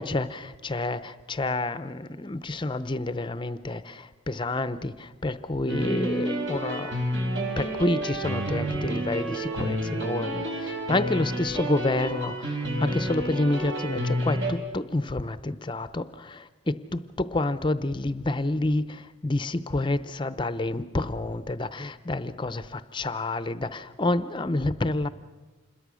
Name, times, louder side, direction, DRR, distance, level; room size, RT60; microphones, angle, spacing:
voice 1, 0.0-6.9 7.6-25.1, left 2 dB, 25° left, 13 dB, 0.6 m, -29 dB
sound 1, 5.7-14.5, right 1 dB, 60° right, 4.7 m, -30 dB
27.0 x 21.5 x 6.3 m, 1.3 s
head